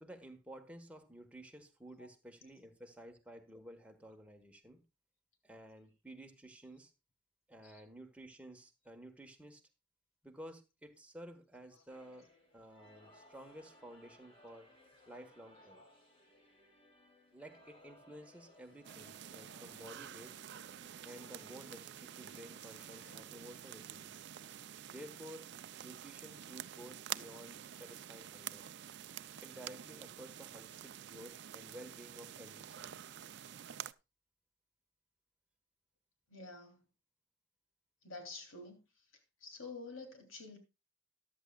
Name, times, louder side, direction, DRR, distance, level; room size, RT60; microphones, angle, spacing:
voice 1, 0.0-4.8 5.4-6.9 7.5-9.6 10.2-12.3 12.5-14.7 15.1-15.8 17.3-20.4 21.0-24.3 24.9-25.5 25.8-28.6 29.4-33.0, right 1 dB, 5° right, 1.4 m, -53 dB
sound 1, 11.9-23.2, left 1 dB, 30° left, 3.2 m, -63 dB
sound 2, 18.8-33.9, right 10 dB, 60° right, 0.4 m, -48 dB
voice 2, 36.3-36.8 38.0-40.6, left 3 dB, 90° left, 3.2 m, -50 dB
14.0 x 11.5 x 2.4 m
head